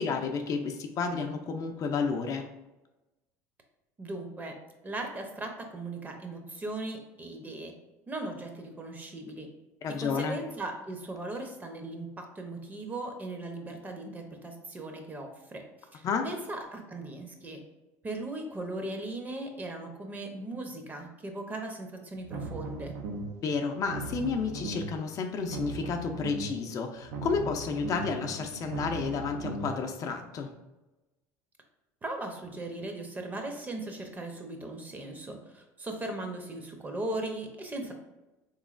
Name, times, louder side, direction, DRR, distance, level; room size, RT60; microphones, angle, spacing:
voice 1, 0.0-2.5 9.8-10.4 16.0-16.3 23.4-30.5, left 5 dB, 45° left, 5 dB, 0.4 m, -31 dB
voice 2, 4.0-4.5 4.8-7.7 8.1-9.5 10.0-15.6 15.9-17.6 18.0-22.9 32.0-37.9, right 2 dB, 20° right, 4 dB, 0.6 m, -38 dB
sound 1, 22.2-23.4 23.8-25.0 25.4-26.6 27.0-29.8, right 3 dB, 80° right, 0.5 m, -38 dB
3.5 x 3.0 x 2.4 m, 1.0 s
supercardioid pair, 90°, 8 cm